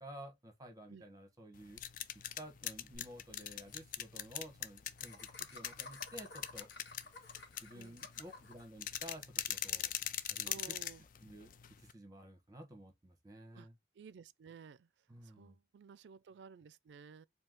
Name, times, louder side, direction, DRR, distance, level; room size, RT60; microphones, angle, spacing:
voice 1, 0.0-1.8 2.4-6.7 7.6-9.9 10.3-10.5 11.2-11.5 11.8-13.7 15.1-15.6, right 1 dB, 20° right, 1.1 m, -52 dB
sound 1, 1.5-11.9, left 11 dB, 50° left, 0.4 m, -42 dB
Laughter, 2.9-3.0 3.3-3.4 3.6-3.8 5.0-8.7, left 3 dB, 65° left, 1.6 m, -53 dB
voice 2, 10.5-11.0 13.5-13.7 13.9-14.9 15.2-17.3, right 5 dB, 80° right, 0.3 m, -54 dB
4.5 x 2.7 x 3.7 m
head